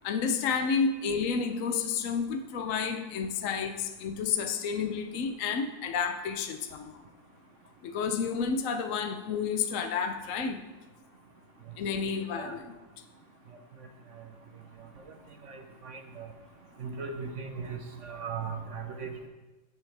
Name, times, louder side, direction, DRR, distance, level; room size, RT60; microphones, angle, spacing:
voice 1, 0.0-6.9 7.8-10.6 11.8-12.7, left 6 dB, 65° left, 6 dB, 0.8 m, -30 dB
voice 2, 15.4-16.3 16.8-19.3, right 5 dB, 55° right, 5 dB, 0.9 m, -38 dB
16.5 x 7.0 x 3.4 m, 1.2 s
omnidirectional pair, 2.1 m